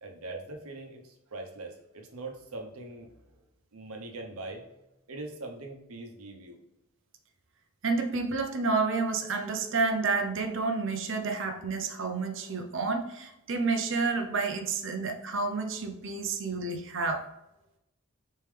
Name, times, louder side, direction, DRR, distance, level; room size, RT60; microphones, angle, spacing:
voice 1, 0.0-3.4 3.7-4.6 5.1-6.6, right 2 dB, 80° right, 3 dB, 1.0 m, -42 dB
voice 2, 7.8-17.2, right 4 dB, 60° right, 4 dB, 0.7 m, -30 dB
4.3 x 3.6 x 3.3 m, 0.86 s
head